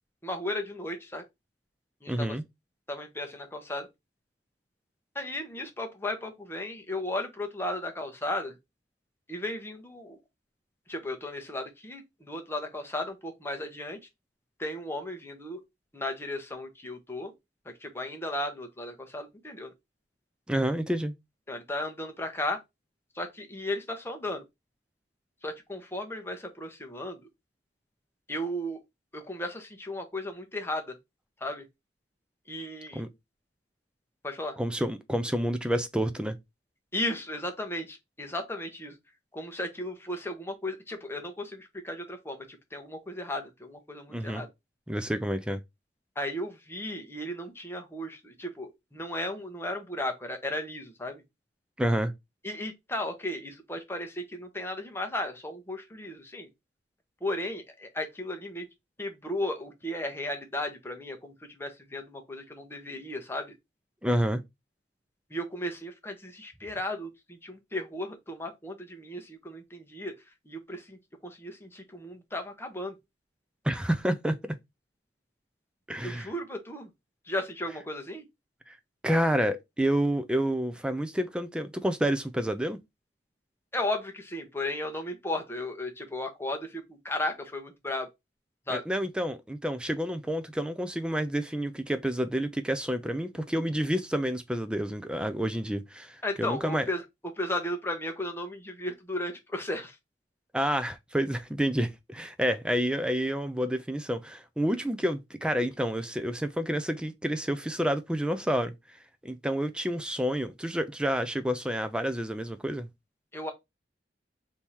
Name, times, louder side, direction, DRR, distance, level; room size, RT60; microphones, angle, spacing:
voice 1, 0.2-1.2 2.0-2.4 2.9-3.9 5.1-8.6 9.3-10.2 10.9-14.0 14.6-15.6 15.9-17.3 17.8-19.7 21.5-22.6 23.2-24.4 25.4-27.2 28.3-28.8 29.1-30.9 31.4-31.7 32.5-33.0 34.2-34.6 36.9-39.0 39.3-42.5 42.7-44.5 46.2-51.2 52.4-56.5 57.2-58.7 59.0-63.5 65.3-70.1 70.5-73.0 76.0-76.9 77.3-78.2 83.7-88.1 88.7-88.8 96.2-97.0 97.4-100.0 113.3-113.5, left 1 dB, 15° left, 0.9 m, -35 dB
voice 2, 2.1-2.4 20.5-21.1 32.9-33.1 34.6-36.4 44.1-44.4 44.9-45.6 51.8-52.1 64.0-64.4 73.6-74.6 75.9-76.3 78.7-78.8 79.0-82.8 88.7-96.9 100.5-108.7 109.2-112.9, equal, 5° right, 0.4 m, -29 dB
3.6 x 2.8 x 4.5 m
head